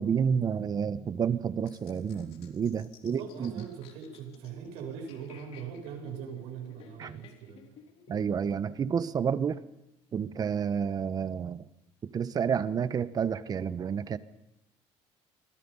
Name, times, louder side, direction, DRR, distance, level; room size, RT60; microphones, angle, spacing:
voice 1, 0.0-3.6 7.0-7.2 8.1-9.6 10.1-11.7 12.0-14.2, right 7 dB, 35° right, 14 dB, 1.2 m, -30 dB
sound 1, 1.7-8.6, left 7 dB, 65° left, 3.6 m, -56 dB
voice 2, 3.0-7.7, right 7 dB, 85° right, 3 dB, 8.0 m, -41 dB
28.5 x 24.0 x 5.6 m, 0.92 s
cardioid pair, 125°, 11 cm